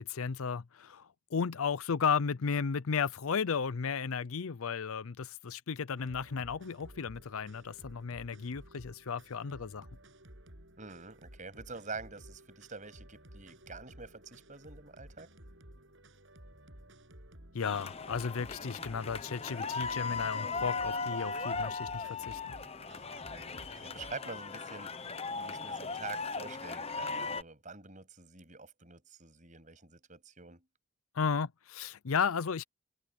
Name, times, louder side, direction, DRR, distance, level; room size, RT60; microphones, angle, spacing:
voice 1, 0.0-9.9 17.5-22.4 31.1-32.6, left 6 dB, 70° left, 0.6 m, -34 dB
sound 1, 6.0-24.2, right 1 dB, 60° right, 7.9 m, -54 dB
voice 2, 10.8-15.3 23.3-30.6, right 4 dB, 35° right, 7.7 m, -46 dB
sound 2, 17.6-27.4, left 4 dB, 25° left, 0.8 m, -38 dB
head